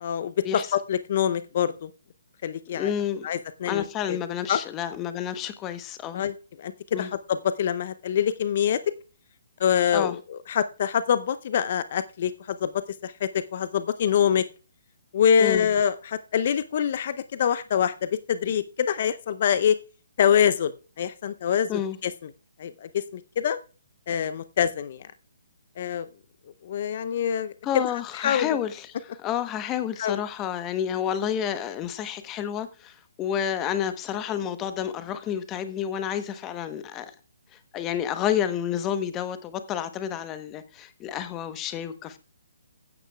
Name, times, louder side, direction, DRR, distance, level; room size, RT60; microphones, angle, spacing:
voice 1, 0.0-1.9 2.4-2.9 3.2-4.2 4.5-4.6 6.1-6.7 7.0-8.8 9.6-14.4 15.1-19.8 20.2-22.3 22.6-23.6 24.1-25.0 25.8-26.1 26.6-27.8 28.2-28.5 30.0-30.2, left 8 dB, 45° left, 0.7 m, -25 dB
voice 2, 2.7-3.3 3.6-6.2 6.9-7.1 9.9-10.2 15.4-15.7 21.7-22.0 27.6-28.9 29.2-37.1 37.7-42.2, left 9 dB, 20° left, 1.0 m, -30 dB
15.0 x 9.3 x 2.3 m
figure-of-eight pair, 135°, 0 cm